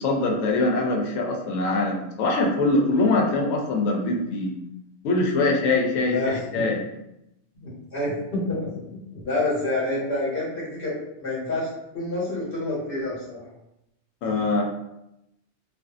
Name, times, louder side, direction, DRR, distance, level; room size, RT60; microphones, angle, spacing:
voice 1, 0.0-4.5 5.0-6.8 14.2-14.6, left 2 dB, 75° left, 1 dB, 0.9 m, -23 dB
voice 2, 6.0-6.6 7.6-10.9 11.2-11.7 11.9-13.4, left 2 dB, 45° left, -7 dB, 1.1 m, -28 dB
2.5 x 2.4 x 2.3 m, 0.85 s
omnidirectional pair, 1.4 m